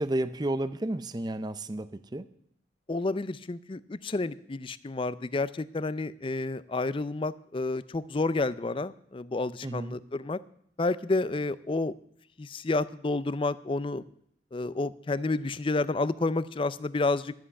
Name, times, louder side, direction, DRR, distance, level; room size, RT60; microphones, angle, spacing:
voice 1, 0.0-2.2 9.6-10.0, right 1 dB, 25° right, 13 dB, 0.5 m, -31 dB
voice 2, 2.9-10.4 10.8-11.9 12.4-14.0 14.5-17.3, left 3 dB, 30° left, 17 dB, 0.5 m, -30 dB
12.5 x 7.6 x 8.3 m, 0.67 s
head